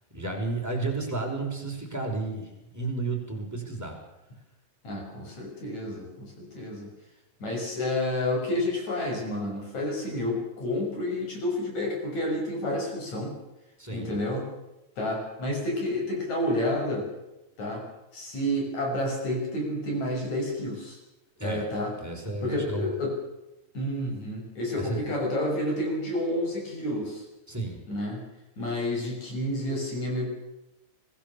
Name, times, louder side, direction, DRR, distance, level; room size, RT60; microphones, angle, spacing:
voice 1, 0.1-4.0 13.8-14.2 21.4-21.7 22.0-22.9 24.8-25.1 27.5-27.8, right 3 dB, 5° right, -1 dB, 5.3 m, -32 dB
voice 2, 4.8-6.9 7.4-13.3 13.9-14.5 15.0-17.1 17.6-17.8 18.1-21.0 21.4-21.9 22.4-23.2 23.7-27.2 27.9-28.2 28.6-30.3, left 1 dB, 50° left, 0 dB, 7.6 m, -30 dB
25.0 x 18.0 x 7.2 m, 0.94 s
omnidirectional pair, 4.3 m